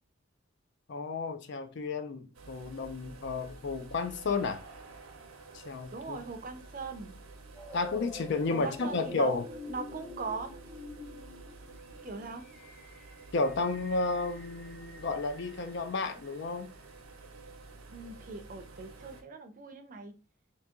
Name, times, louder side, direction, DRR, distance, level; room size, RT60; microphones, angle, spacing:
voice 1, 0.9-4.6 5.5-6.2 7.7-9.5 13.3-16.7, left 3 dB, 55° left, 0.5 m, -32 dB
sound 1, 2.3-19.2, right 3 dB, 85° right, 0.7 m, -51 dB
voice 2, 5.9-7.1 8.5-9.4 9.7-10.5 12.0-12.4 17.9-20.1, right 4 dB, 40° right, 0.5 m, -40 dB
sound 2, 7.5-16.5, left 1 dB, ahead, 0.6 m, -47 dB
2.8 x 2.8 x 3.5 m
head